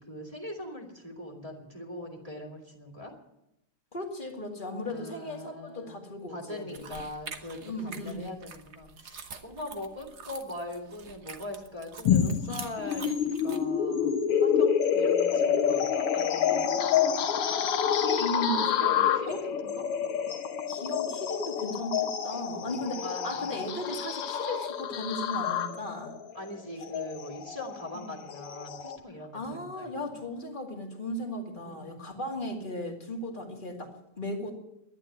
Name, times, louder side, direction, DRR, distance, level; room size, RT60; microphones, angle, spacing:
voice 1, 0.0-3.2 4.9-6.0 6.3-17.1 17.9-18.4 18.8-19.8 22.9-23.6 26.3-30.0 31.6-32.1, left 1 dB, 15° right, -1 dB, 2.3 m, -41 dB
voice 2, 3.9-6.9 7.6-8.3 18.2-18.9 19.2-19.4 20.7-26.1 27.9-28.1 29.3-34.5, left 1 dB, 25° left, 1 dB, 2.2 m, -36 dB
sound 1, 6.7-13.6, right 5 dB, 45° right, 1.0 m, -46 dB
sound 2, 12.0-29.0, left 8 dB, 85° left, 2.0 m, -28 dB
sound 3, 15.0-23.4, left 8 dB, 60° left, 1.4 m, -45 dB
11.5 x 10.5 x 9.0 m, 0.86 s
omnidirectional pair, 2.4 m